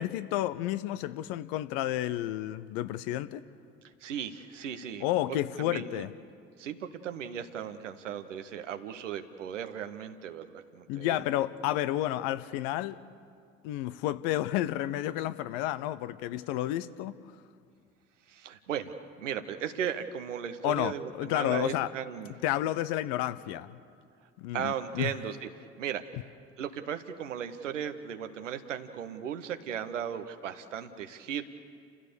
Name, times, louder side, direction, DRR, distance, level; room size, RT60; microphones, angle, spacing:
voice 1, 0.0-3.4 5.0-6.1 10.9-13.0 13.6-17.2 20.6-21.9 22.4-23.8 24.4-25.1, left 14 dB, 70° left, 0.8 m, -31 dB
voice 2, 4.0-6.0 6.6-11.2 18.3-22.3 24.5-26.0 26.6-31.4, right 8 dB, 90° right, 1.0 m, -36 dB
29.5 x 15.5 x 6.9 m
hypercardioid pair, 50°, 36 cm